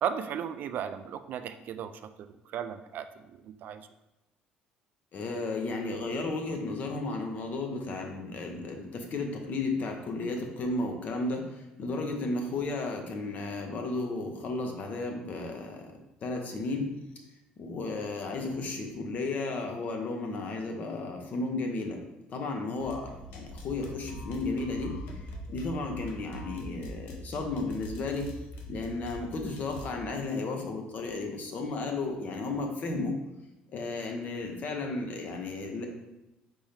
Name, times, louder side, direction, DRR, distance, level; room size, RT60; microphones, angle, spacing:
voice 1, 0.0-1.9 2.5-3.1 3.6-3.8, right 8 dB, 60° right, 9 dB, 0.3 m, -34 dB
voice 2, 5.1-15.9 16.2-16.9 17.6-22.0 22.3-28.3 28.7-33.1 33.7-35.9, left 3 dB, 50° left, 3 dB, 0.8 m, -34 dB
sound 1, 22.8-29.9, equal, 80° left, 0.8 m, -42 dB
4.2 x 3.6 x 3.3 m, 0.95 s
cardioid pair, 95°, 3 cm